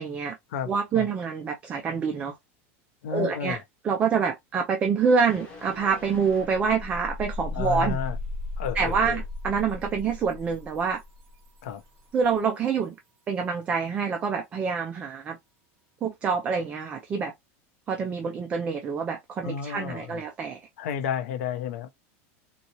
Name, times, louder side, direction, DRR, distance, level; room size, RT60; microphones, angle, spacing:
voice 1, 0.0-0.4 0.7-2.4 3.1-3.6 3.8-8.0 8.7-11.0 12.1-13.0 13.3-15.4 16.0-17.3 17.9-20.6, right 6 dB, 15° right, 0.4 m, -26 dB
voice 2, 0.5-1.1 3.0-3.6 7.5-8.2 8.6-9.2 11.6-11.8 19.4-20.2 20.8-21.9, left 8 dB, 85° left, 0.7 m, -32 dB
sound 1, 5.0-7.0 7.5-7.6, left 3 dB, 15° left, 1.0 m, -47 dB
sound 2, 5.8-12.5, left 3 dB, 35° right, 2.2 m, -36 dB
3.9 x 2.1 x 2.8 m
supercardioid pair, 180°, 7 cm